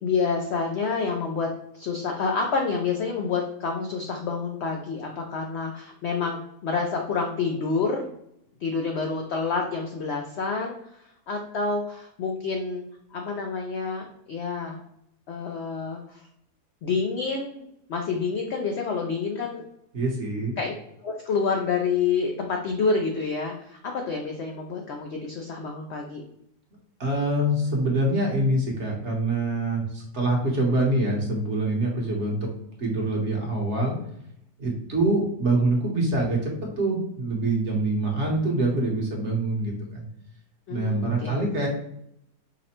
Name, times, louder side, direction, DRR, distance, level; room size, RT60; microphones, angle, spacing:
voice 1, 0.0-8.0 8.6-12.8 13.1-14.8 15.3-16.3 16.8-17.6 17.9-19.6 20.6-20.7 21.0-26.2 40.7-41.4, left 4 dB, 80° left, 2 dB, 0.6 m, -28 dB
voice 2, 19.9-20.6 27.0-32.5 32.8-34.0 34.6-40.1 40.7-41.7, right 2 dB, 50° right, -1 dB, 1.2 m, -25 dB
4.9 x 2.1 x 4.2 m, 0.76 s
omnidirectional pair, 1.8 m